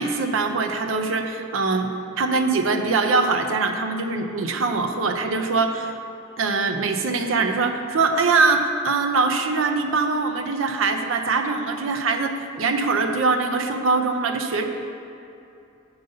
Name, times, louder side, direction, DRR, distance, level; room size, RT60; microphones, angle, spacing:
voice 1, 0.0-1.9 2.2-6.0 6.4-14.7, right 4 dB, 80° right, 6 dB, 0.5 m, -22 dB
6.8 x 4.0 x 6.5 m, 2.7 s
head